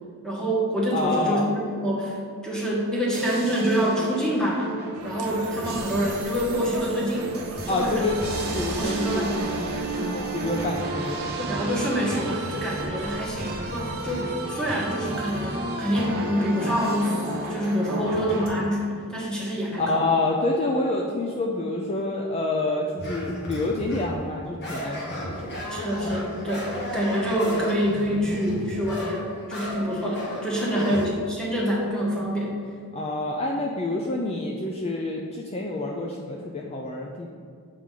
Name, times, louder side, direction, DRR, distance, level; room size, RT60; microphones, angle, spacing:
voice 1, 0.2-2.2 2.4-4.7 5.0-7.3 7.7-8.1 8.4-9.5 11.4-17.2 17.5-20.0 25.7-32.6, equal, 5° left, -5 dB, 1.3 m, -26 dB
voice 2, 0.9-1.5 7.7-8.2 8.5-9.3 9.6-11.3 19.8-25.3 30.7-31.1 32.9-37.3, left 2 dB, 30° left, -1 dB, 0.4 m, -27 dB
sound 1, 3.1-18.5, right 2 dB, 45° right, 1.1 m, -32 dB
sound 2, 4.9-13.9, right 2 dB, 75° right, 0.7 m, -40 dB
sound 3, 23.0-24.2 24.6-31.1, equal, 50° left, 1.5 m, -34 dB
7.2 x 4.8 x 3.8 m, 2.3 s
head